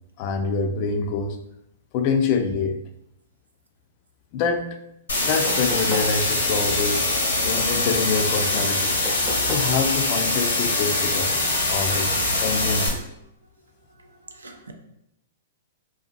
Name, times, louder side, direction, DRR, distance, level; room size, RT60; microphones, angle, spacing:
voice 1, 0.2-1.4 1.9-2.8 4.3-4.7 5.2-7.1 7.4-8.9 9.5-11.3 11.7-12.1 12.4-13.0, left 5 dB, 45° left, 0.3 m, -25 dB
sound 1, 5.1-12.9, left 2 dB, 80° left, 0.7 m, -23 dB
sound 2, 5.5-6.2 9.0-9.8 11.4-11.5, equal, 15° right, 0.7 m, -32 dB
voice 2, 7.3-7.8 14.0-14.7, right 3 dB, 85° right, 0.4 m, -45 dB
2.6 x 2.3 x 2.5 m
hypercardioid pair, 110°, 0 cm